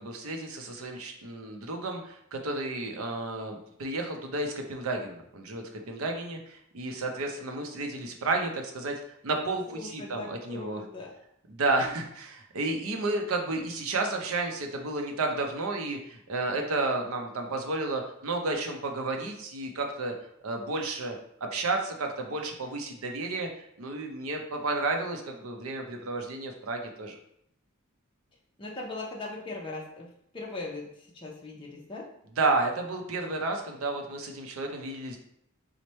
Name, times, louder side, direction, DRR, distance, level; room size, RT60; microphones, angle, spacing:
voice 1, 0.0-8.9 9.2-10.8 11.5-20.1 20.4-27.2 32.4-35.2, right 2 dB, 85° right, 3 dB, 0.6 m, -32 dB
voice 2, 9.7-11.1 11.8-11.9 28.6-32.1, left 2 dB, 25° left, -3 dB, 0.5 m, -40 dB
3.1 x 2.1 x 4.1 m, 0.73 s
head